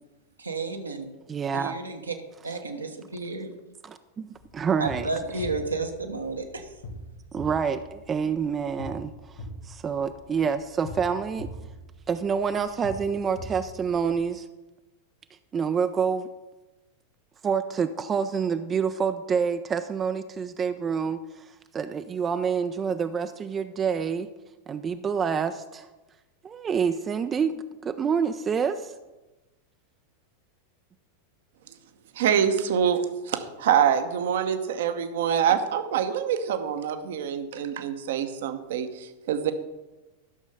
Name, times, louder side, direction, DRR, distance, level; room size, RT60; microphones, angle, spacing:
voice 1, 0.4-1.0 1.5-2.1 2.4-3.5 4.8-6.7, right 3 dB, 80° right, 4 dB, 1.2 m, -32 dB
voice 2, 1.3-1.8 3.8-5.1 7.3-11.5 12.1-14.5 15.3-16.3 17.4-24.3 24.7-25.9 26.4-29.0, right 6 dB, 20° right, 10 dB, 0.4 m, -27 dB
sound 1, 4.4-14.3, equal, 60° left, 2.2 m, -42 dB
voice 3, 32.1-39.5, right 8 dB, 55° right, 9 dB, 0.9 m, -25 dB
12.5 x 6.3 x 5.5 m, 1.1 s
figure-of-eight pair, 90°, 0 cm